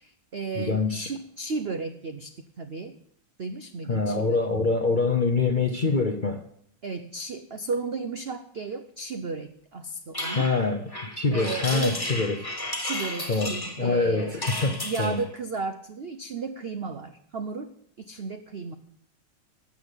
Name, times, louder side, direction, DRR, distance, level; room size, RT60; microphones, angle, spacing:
voice 1, 0.0-3.0 3.4-4.5 6.8-10.5 11.3-12.0 12.8-14.4 14.8-18.7, right 4 dB, 80° right, 9 dB, 0.5 m, -34 dB
voice 2, 0.6-1.1 3.9-6.4 10.3-10.8 11.1-12.5 13.3-15.2, left 3 dB, 50° left, 6 dB, 0.5 m, -25 dB
sound 1, 10.1-15.2, left 1 dB, 15° left, 1.5 m, -33 dB
13.0 x 7.3 x 8.1 m, 0.68 s
omnidirectional pair, 2.1 m